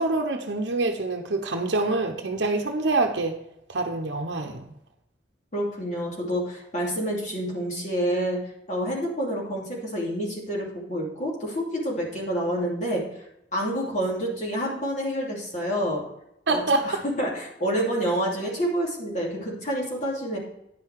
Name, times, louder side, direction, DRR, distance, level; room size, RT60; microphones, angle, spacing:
voice 1, 0.0-3.4 3.7-4.7 16.5-17.0, right 2 dB, 75° right, 3 dB, 0.8 m, -26 dB
voice 2, 5.5-8.4 8.7-13.0 13.5-16.0 16.5-20.4, equal, 40° left, -3 dB, 2.8 m, -28 dB
9.8 x 5.7 x 4.6 m, 0.83 s
head